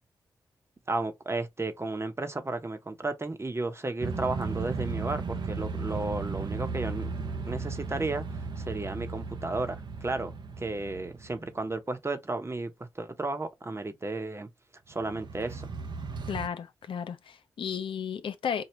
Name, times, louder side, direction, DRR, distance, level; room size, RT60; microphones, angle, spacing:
voice 1, 0.9-7.1 7.4-14.5 14.9-15.7, right 2 dB, 30° right, 1.1 m, -33 dB
sound 1, 4.0-11.5 14.9-16.5, right 4 dB, 55° right, 0.8 m, -35 dB
voice 2, 16.3-18.7, left 7 dB, 70° left, 0.7 m, -34 dB
4.6 x 2.3 x 3.2 m
supercardioid pair, 40°, 9 cm